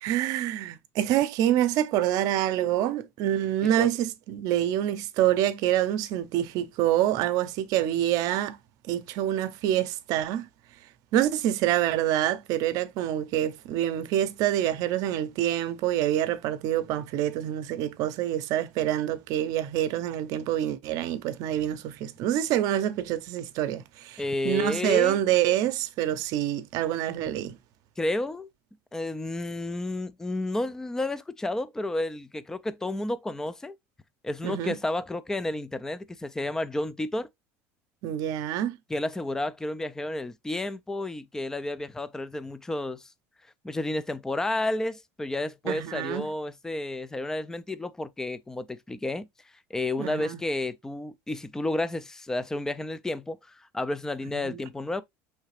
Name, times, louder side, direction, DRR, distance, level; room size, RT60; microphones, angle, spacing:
voice 1, 0.0-8.6 8.9-10.5 11.1-27.6 34.4-34.8 38.0-38.8 45.7-46.3 50.0-50.4 54.4-54.6, right 12 dB, 65° right, 0.6 m, -26 dB
voice 2, 24.2-25.2 28.0-28.5 28.9-33.8 34.2-37.3 38.9-43.1 43.6-49.3 49.7-55.0, left 2 dB, 10° left, 0.3 m, -31 dB
4.7 x 3.2 x 3.2 m
supercardioid pair, 115°, 7 cm